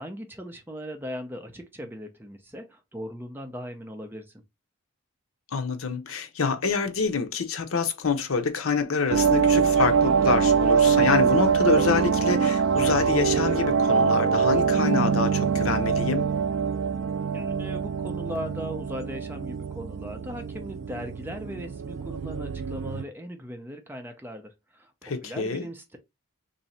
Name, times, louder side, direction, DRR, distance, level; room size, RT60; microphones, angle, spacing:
voice 1, 0.0-4.4 17.3-26.0, equal, 10° right, 0.5 m, -38 dB
voice 2, 5.5-16.3 25.0-25.7, left 5 dB, 85° left, 0.7 m, -26 dB
sound 1, 9.1-23.0, right 6 dB, 65° right, 0.3 m, -24 dB
3.0 x 2.7 x 4.1 m
head